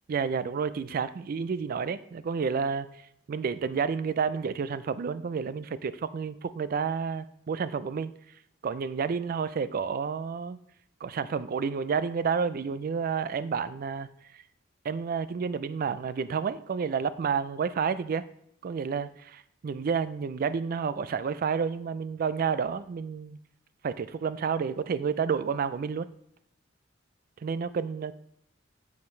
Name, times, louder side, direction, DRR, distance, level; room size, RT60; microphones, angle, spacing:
voice 1, 0.1-2.9 3.3-8.1 8.6-10.6 11.0-14.1 14.3-14.4 14.8-18.3 18.6-23.4 23.8-26.1 27.4-28.1, right 6 dB, 45° right, 15 dB, 0.3 m, -30 dB
7.2 x 7.0 x 3.2 m, 0.71 s
head